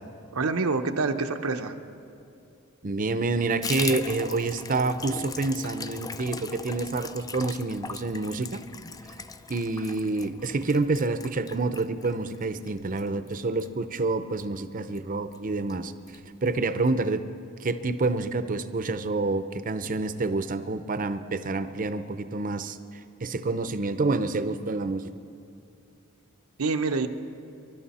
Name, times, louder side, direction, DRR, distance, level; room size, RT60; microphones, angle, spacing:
voice 1, 0.3-1.7 26.6-27.1, right 3 dB, 90° right, 6 dB, 0.8 m, -26 dB
voice 2, 2.8-8.6 9.5-15.9 16.4-17.2 17.6-22.8 23.2-25.0, right 3 dB, 40° right, 11 dB, 0.6 m, -28 dB
Water tap faucet / Bathtub (filling or washing), 3.6-14.6 14.9-15.0 15.3-15.4 15.7-16.2 16.5-16.6 16.8-16.9, left 4 dB, 15° left, 0.4 m, -39 dB
26.0 x 12.0 x 4.3 m, 2.6 s
head